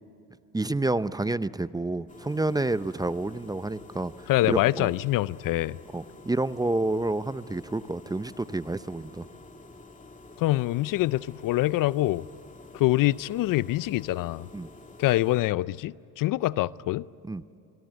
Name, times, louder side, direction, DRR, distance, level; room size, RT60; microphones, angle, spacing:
voice 1, 0.5-4.1 4.5-4.9 5.9-9.3 14.5-14.7 17.2-17.4, right 2 dB, 10° right, 0.6 m, -29 dB
sound 1, 2.1-15.4, left 2 dB, 20° left, 2.6 m, -49 dB
voice 2, 4.3-5.8 10.4-12.2 12.7-14.5 15.0-17.1, left 17 dB, 55° left, 0.6 m, -25 dB
26.0 x 22.0 x 7.8 m
supercardioid pair, 80°, 39 cm